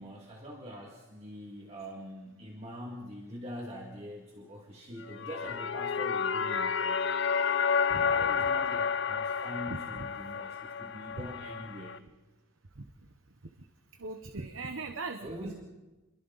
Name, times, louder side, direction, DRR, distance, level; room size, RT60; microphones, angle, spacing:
voice 1, 0.0-7.1 7.9-12.0 15.2-15.5, equal, 30° right, -1 dB, 2.2 m, -44 dB
sound 1, 5.0-12.0, left 6 dB, 60° left, 0.7 m, -30 dB
voice 2, 9.7-10.1 12.8-12.9 14.0-15.5, right 3 dB, 75° right, 6 dB, 1.1 m, -39 dB
29.0 x 22.5 x 4.1 m, 1.1 s
head